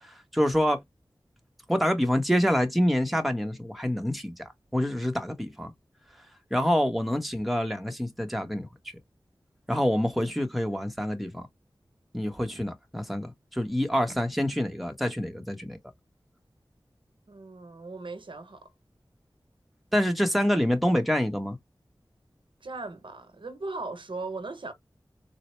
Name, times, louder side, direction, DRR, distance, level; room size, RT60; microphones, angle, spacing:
voice 1, 0.0-0.8 1.7-5.7 6.5-8.7 9.7-11.5 12.1-15.8 19.9-21.6, equal, ahead, 0.9 m, -26 dB
voice 2, 17.3-18.7 22.6-24.7, right 3 dB, 75° right, 0.8 m, -38 dB
4.1 x 2.0 x 3.1 m
wide cardioid pair, 50°, 9 cm